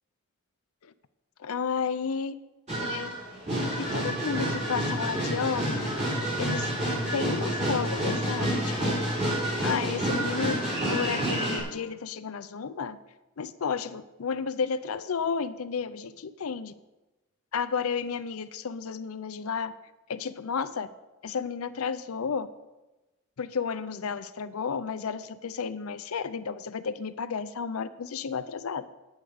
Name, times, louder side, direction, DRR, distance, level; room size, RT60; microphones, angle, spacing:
voice 1, 1.4-2.3 2.8-3.2 3.7-5.9 6.4-6.7 7.1-9.0 9.6-10.6 10.9-13.0 13.4-16.7 17.5-19.7 20.1-20.9 21.2-22.5 23.4-28.8, left 6 dB, 80° left, 13 dB, 0.6 m, -32 dB
sound 1, 2.7-11.6, right 1 dB, 30° right, 3.6 m, -29 dB
10.5 x 8.2 x 5.0 m, 1.1 s
head